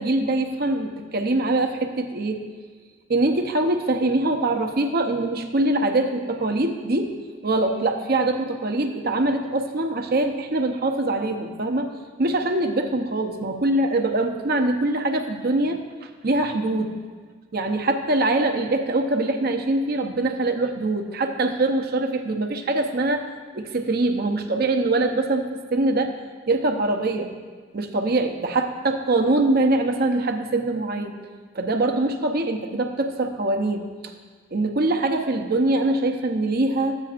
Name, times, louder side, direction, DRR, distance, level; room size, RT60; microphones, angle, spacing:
voice 1, 0.0-2.4 3.1-7.1 7.4-11.9 12.2-16.9 17.5-23.3 23.5-26.2 26.5-27.3 27.7-31.1 31.5-33.9 34.5-37.0, right 2 dB, 55° right, 4 dB, 0.8 m, -23 dB
14.0 x 8.8 x 2.5 m, 1.5 s
head